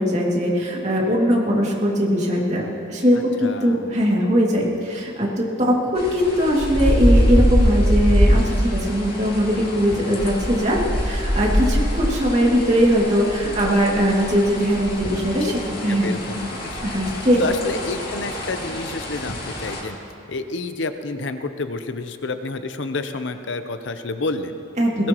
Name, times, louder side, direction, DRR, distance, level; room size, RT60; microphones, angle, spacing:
voice 1, 0.0-2.6 2.9-15.5 15.8-16.1 16.8-17.4 24.8-25.1, equal, 35° right, -3 dB, 2.3 m, -20 dB
voice 2, 3.4-3.9 15.9-16.8 17.4-20.0 20.3-24.6 25.0-25.1, left 3 dB, 70° left, 9 dB, 0.7 m, -29 dB
sound 1, 6.0-19.8, equal, 50° left, 2.4 m, -23 dB
21.0 x 18.0 x 3.0 m, 2.7 s
head